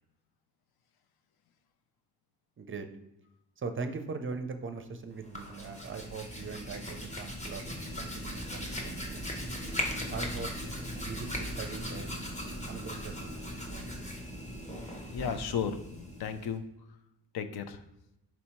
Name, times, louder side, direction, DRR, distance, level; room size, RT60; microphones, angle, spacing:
voice 1, 2.6-2.9 3.6-9.4 10.1-10.5 11.0-12.1 12.7-13.4 13.7-14.1, right 4 dB, 30° right, 7 dB, 0.5 m, -41 dB
Hands, 5.1-16.6, equal, 15° left, 0.9 m, -38 dB
voice 2, 15.1-16.6 17.3-17.8, left 7 dB, 65° left, 9 dB, 0.6 m, -34 dB
4.3 x 2.8 x 4.4 m, 0.91 s
cardioid pair, 90°, 40 cm